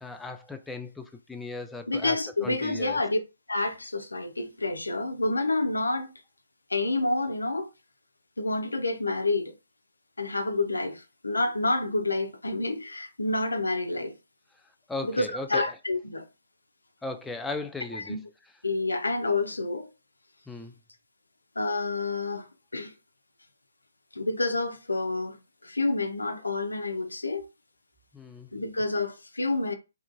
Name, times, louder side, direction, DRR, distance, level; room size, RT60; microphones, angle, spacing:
voice 1, 0.0-3.0 14.9-15.7 17.0-18.2 20.5-20.7 28.1-28.5, left 2 dB, 5° left, 0.3 m, -37 dB
voice 2, 1.9-3.2 3.5-6.1 6.7-7.7 8.4-9.5 10.2-14.1 15.0-16.2 17.9-18.2 18.6-19.9 21.6-22.9 24.1-27.5 28.5-29.7, left 2 dB, 85° left, 0.4 m, -28 dB
2.7 x 2.4 x 2.4 m
figure-of-eight pair, 130°, 0 cm